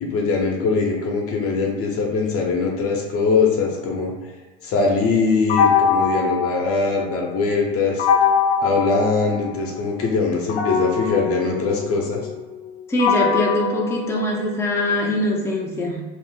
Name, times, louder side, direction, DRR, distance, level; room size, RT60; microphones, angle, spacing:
voice 1, 0.0-4.1 4.6-8.0 8.6-12.2, left 4 dB, 45° left, -1 dB, 0.9 m, -22 dB
sound 1, 5.5-7.3 8.0-9.8 10.5-14.8, left 6 dB, 70° left, 0.6 m, -22 dB
voice 2, 12.9-16.0, left 1 dB, 10° left, -3 dB, 0.7 m, -22 dB
2.7 x 2.4 x 3.7 m, 1.3 s
hypercardioid pair, 80°, 33 cm